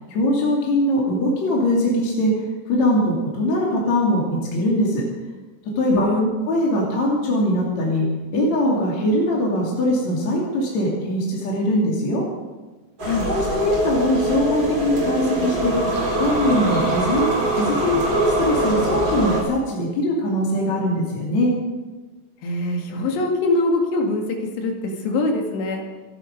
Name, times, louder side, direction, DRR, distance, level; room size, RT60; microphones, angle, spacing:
voice 1, 0.1-2.3 2.7-5.0 5.8-6.1 6.5-8.1 8.3-12.2 13.2-15.8 16.2-17.3 17.6-21.5, left 1 dB, 45° left, -3 dB, 3.5 m, -21 dB
voice 2, 5.9-6.3 13.0-13.3 22.4-25.8, left 2 dB, 70° left, 2 dB, 4.1 m, -23 dB
sound 1, 13.0-19.4, right 1 dB, 25° right, 4.5 m, -23 dB
25.5 x 9.8 x 5.3 m, 1.2 s
omnidirectional pair, 5.1 m